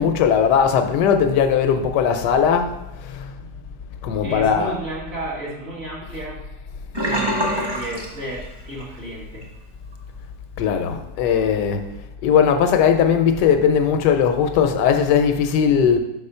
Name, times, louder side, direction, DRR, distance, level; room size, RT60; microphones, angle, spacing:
voice 1, 0.0-3.4 4.0-4.7 6.1-6.2 10.6-11.8 12.2-16.0, left 7 dB, 80° left, 1.2 m, -18 dB
voice 2, 4.2-6.5 7.1-9.5, right 1 dB, 40° right, 1.8 m, -32 dB
Sink (filling or washing), 6.9-8.9 9.2-9.5 9.9-10.0, equal, 15° right, 1.0 m, -25 dB
5.3 x 4.3 x 5.4 m
omnidirectional pair, 1.8 m